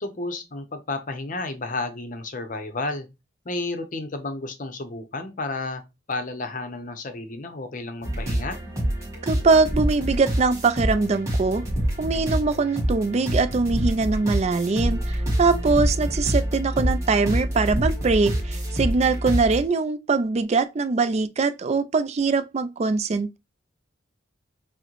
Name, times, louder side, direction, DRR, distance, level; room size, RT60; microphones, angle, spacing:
voice 1, 0.0-3.1 3.4-5.8 6.1-8.6, left 2 dB, 40° left, 0.6 m, -32 dB
sound 1, 8.0-19.6, right 1 dB, 15° right, 1.4 m, -26 dB
voice 2, 9.2-11.6 12.0-23.4, right 4 dB, 35° right, 0.3 m, -22 dB
6.1 x 2.1 x 3.0 m
head